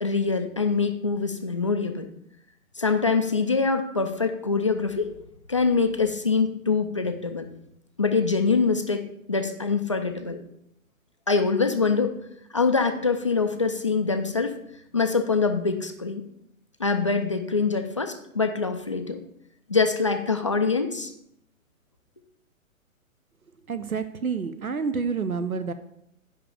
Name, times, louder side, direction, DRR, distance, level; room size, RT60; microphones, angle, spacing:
voice 1, 0.0-2.1 2.8-5.1 5.5-7.5 8.0-10.4 11.3-12.2 12.5-14.5 14.9-16.2 16.8-19.2 19.7-21.1, left 4 dB, 25° left, 6 dB, 0.3 m, -24 dB
voice 2, 23.7-25.7, right 5 dB, 90° right, 12 dB, 0.7 m, -28 dB
10.0 x 3.6 x 6.9 m, 0.76 s
figure-of-eight pair, 125°, 42 cm